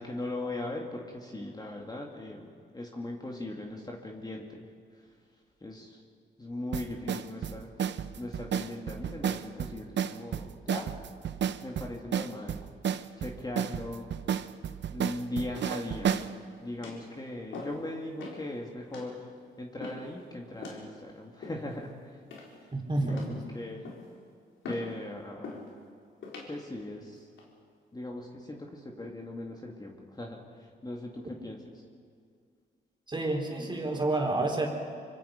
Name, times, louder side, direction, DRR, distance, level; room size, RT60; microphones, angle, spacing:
voice 1, 0.0-4.6 5.6-6.0 6.4-7.7 8.2-10.9 11.6-12.6 13.2-14.1 14.9-16.1 16.6-19.2 19.6-22.2 23.0-23.8 24.7-25.6 26.5-27.3 27.9-31.6, left 1 dB, 20° left, 0 dB, 2.6 m, -39 dB
sound 1, 6.7-16.3, right 8 dB, 70° right, 0.9 m, -32 dB
sound 2, 16.1-16.4 16.8-17.1 17.5-17.8 18.2-18.4 18.9-19.1 19.8-20.1 20.6-20.8 21.4-21.8 22.3-22.7 23.1-23.4 23.8-24.1 24.6-24.9 25.4-25.7 26.2-26.5 27.1-27.4, left 3 dB, 85° left, 4.4 m, -43 dB
voice 2, 22.7-23.4 33.1-34.7, right 2 dB, 25° right, 1 dB, 4.5 m, -29 dB
25.5 x 25.0 x 5.4 m, 2.2 s
cardioid pair, 95°, 19 cm